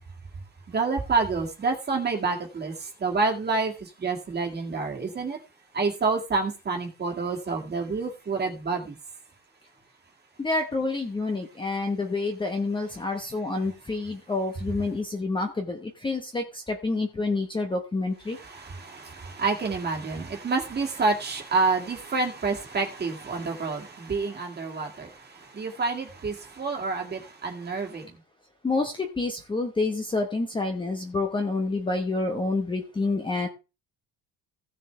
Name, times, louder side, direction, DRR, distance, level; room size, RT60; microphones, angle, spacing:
voice 1, 0.7-5.4 5.7-9.0 18.3-28.1, right 4 dB, 25° right, 2.0 m, -28 dB
voice 2, 10.4-15.8 16.0-16.4 16.8-18.4 28.6-33.5, left 3 dB, 10° left, 1.0 m, -28 dB
16.0 x 6.7 x 3.3 m
cardioid pair, 170°, 40 cm